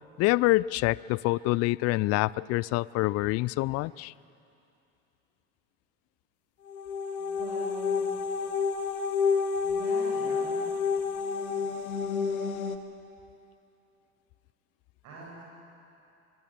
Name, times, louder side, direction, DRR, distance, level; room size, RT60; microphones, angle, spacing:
voice 1, 0.2-4.1, left 20 dB, 40° left, 23 dB, 0.4 m, -26 dB
sound 1, 6.7-12.8, left 5 dB, 80° left, 1.4 m, -29 dB
voice 2, 7.2-8.1 9.6-10.7 15.0-15.4, right 3 dB, 50° right, -6 dB, 7.3 m, -43 dB
23.5 x 22.0 x 7.5 m, 2.7 s
figure-of-eight pair, 70°, 42 cm